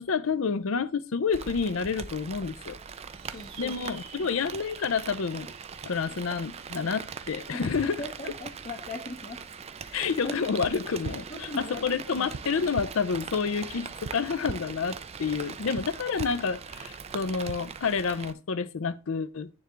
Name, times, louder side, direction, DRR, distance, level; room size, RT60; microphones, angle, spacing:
voice 1, 0.0-2.8 3.6-5.5 5.8-8.0 9.9-19.5, left 5 dB, 65° left, 0.5 m, -29 dB
Rain, 1.3-18.3, right 6 dB, 30° right, 0.4 m, -41 dB
sound 1, 3.1-7.9, right 7 dB, 60° right, 1.4 m, -51 dB
voice 2, 3.3-3.8 4.2-4.3 7.5-9.4 9.8-10.3 11.3-12.3, left 1 dB, 35° left, 0.8 m, -39 dB
sound 2, 10.6-10.7 11.0-11.2 12.3-12.4 12.7-12.9 14.0-14.1 14.5-14.6 15.8-15.9 16.2-16.3 17.5-17.6, right 5 dB, 85° right, 0.5 m, -35 dB
9.6 x 3.4 x 3.7 m
head